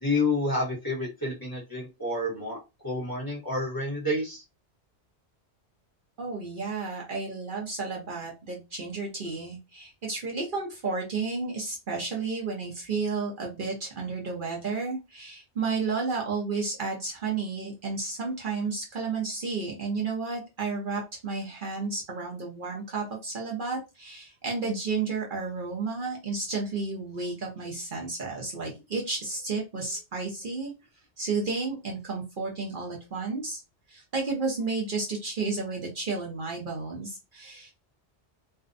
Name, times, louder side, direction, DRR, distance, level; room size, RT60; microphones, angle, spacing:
voice 1, 0.0-2.6 2.8-4.4, left 2 dB, 20° left, -5 dB, 0.9 m, -29 dB
voice 2, 6.2-30.7 31.2-33.6 33.9-37.7, right 4 dB, 55° right, -1 dB, 0.8 m, -32 dB
2.5 x 2.1 x 2.5 m, 0.26 s
omnidirectional pair, 1.1 m